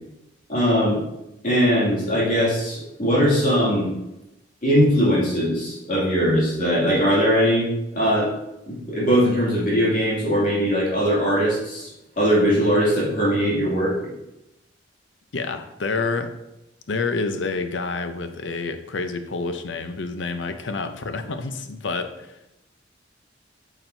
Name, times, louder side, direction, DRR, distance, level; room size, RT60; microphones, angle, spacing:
voice 1, 0.5-1.0 1.4-3.9 4.6-8.3 8.7-11.9 12.2-13.9, equal, 45° left, -7 dB, 2.5 m, -20 dB
voice 2, 15.3-16.3 16.9-22.4, left 3 dB, 75° left, 8 dB, 0.7 m, -28 dB
8.8 x 6.0 x 2.7 m, 0.90 s
head